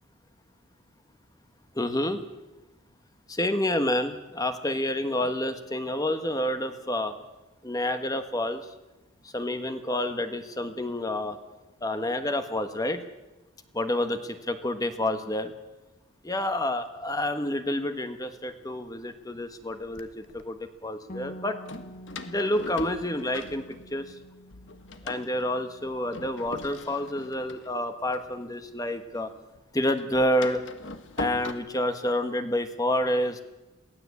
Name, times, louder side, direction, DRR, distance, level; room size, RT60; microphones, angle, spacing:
voice 1, 1.7-2.2 3.3-7.1 7.6-8.6 9.3-11.4 11.8-13.0 13.7-15.5 16.2-21.6 22.2-23.6 23.9-24.1 25.0-29.3 29.7-30.6 31.2-33.4, left 1 dB, 15° left, 8 dB, 1.3 m, -28 dB
Door, 19.3-20.5 21.7-24.2 24.5-29.0 29.3-31.5, left 2 dB, 65° left, 1.5 m, -41 dB
Bass guitar, 21.1-27.3, equal, 40° left, 1.3 m, -48 dB
23.0 x 16.5 x 8.3 m, 1.1 s
head